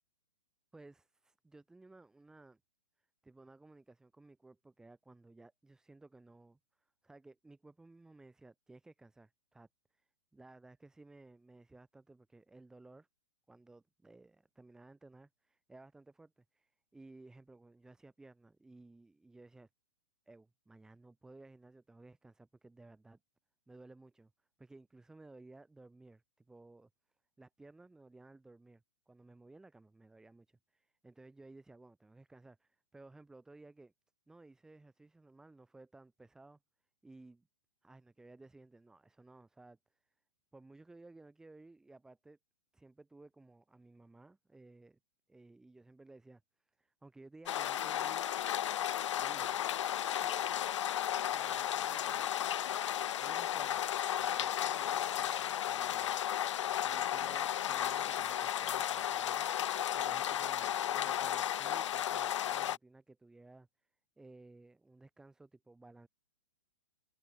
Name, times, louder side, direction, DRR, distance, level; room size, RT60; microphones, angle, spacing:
voice 1, 0.7-2.6 3.0-13.1 13.5-19.7 20.3-23.2 23.7-24.3 24.6-26.9 27.4-33.9 34.3-36.6 37.0-37.5 37.8-40.1 40.5-42.4 42.7-45.0 45.3-48.2 49.2-49.6 50.2-50.6 51.3-52.3 53.2-56.2 56.8-59.5 59.9-63.7 64.2-66.1, right 2 dB, 5° right, 6.6 m, -57 dB
sound 1, 47.5-62.8, left 11 dB, 60° left, 0.4 m, -34 dB
hypercardioid pair, 170°, 17 cm